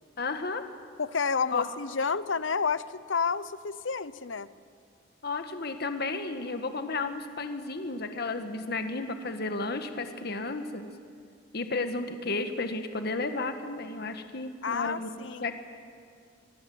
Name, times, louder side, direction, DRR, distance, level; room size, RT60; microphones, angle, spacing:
voice 1, 0.2-0.6 1.5-1.7 5.2-10.9 11.5-15.1 15.4-15.5, left 3 dB, 55° left, 7 dB, 1.5 m, -33 dB
voice 2, 1.0-4.5 14.6-15.4, left 5 dB, 85° left, 15 dB, 0.9 m, -30 dB
25.5 x 23.5 x 7.9 m, 2.2 s
head